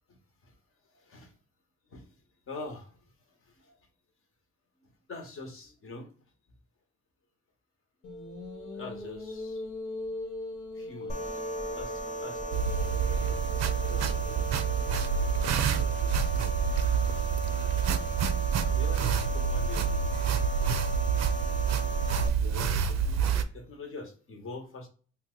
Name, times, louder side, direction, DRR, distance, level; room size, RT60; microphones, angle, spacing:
voice 1, 0.9-1.3 1.9-2.1 2.5-3.0 3.4-3.8 4.8-6.1 8.7-9.6 10.7-11.4 11.7-12.7 13.8-14.9 15.4-16.6 18.7-20.0 22.4-24.9, left 3 dB, 45° left, 5 dB, 0.9 m, -44 dB
sound 1, 8.0-15.4, left 2 dB, 85° left, 0.8 m, -40 dB
sound 2, 11.1-22.3, right 2 dB, 25° left, 0.5 m, -37 dB
sound 3, 12.5-23.4, right 7 dB, 60° right, 0.4 m, -28 dB
2.7 x 2.2 x 3.7 m, 0.39 s
cardioid pair, 90°, 30 cm